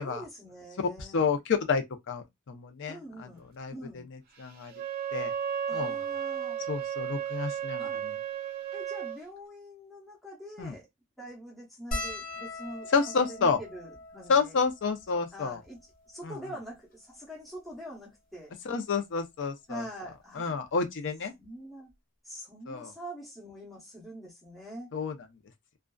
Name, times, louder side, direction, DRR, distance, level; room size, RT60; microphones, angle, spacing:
voice 1, 0.0-1.3 2.9-4.1 5.7-6.6 7.8-8.0 8.7-10.9 11.2-12.9 13.2-14.6 15.3-15.8 16.1-18.5 19.7-20.6 21.4-21.9 22.2-24.9, right 1 dB, ahead, 0.8 m, -44 dB
voice 2, 0.8-3.3 3.6-4.7 5.1-5.3 5.7-6.0 6.7-8.1 10.6-10.7 12.9-13.6 14.3-15.6 16.2-16.3 18.6-19.8 20.4-21.3 22.7-22.9 24.9-25.2, left 5 dB, 55° left, 0.5 m, -30 dB
Wind instrument woodwind instrument, 4.7-9.2, right 9 dB, 45° right, 0.5 m, -34 dB
sound 1, 11.9-16.5 17.3-17.4 17.5-17.7 19.0-19.2 20.7-20.8 21.0-21.2, left 2 dB, 40° left, 0.9 m, -41 dB
2.4 x 2.3 x 2.2 m
head